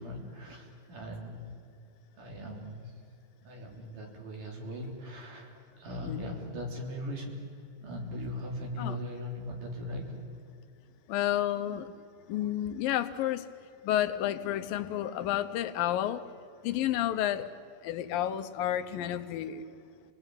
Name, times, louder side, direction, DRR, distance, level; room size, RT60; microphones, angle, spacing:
voice 1, 0.0-1.5 2.1-3.0 3.4-5.5 5.8-7.4 7.8-10.1, left 1 dB, 65° right, 1 dB, 4.9 m, -39 dB
voice 2, 11.1-11.9 12.3-13.5 13.8-16.2 16.6-17.5 17.8-19.7, left 12 dB, 80° left, 10 dB, 2.6 m, -30 dB
28.0 x 19.0 x 9.0 m, 2.3 s
omnidirectional pair, 4.1 m